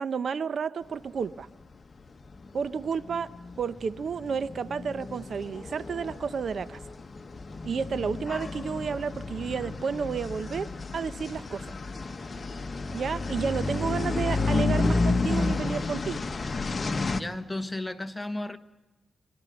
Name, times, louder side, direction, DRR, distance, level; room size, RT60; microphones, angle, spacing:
voice 1, 0.0-1.5 2.5-3.3 3.6-6.8 7.6-10.7 10.9-11.8 12.9-16.3, right 6 dB, 60° right, 0.7 m, -31 dB
sound 1, 1.7-1.8 2.1-17.2, left 3 dB, 35° left, 1.3 m, -31 dB
voice 2, 17.1-18.6, left 2 dB, 15° left, 1.3 m, -34 dB
25.5 x 13.0 x 9.5 m
cardioid pair, 65°, 0 cm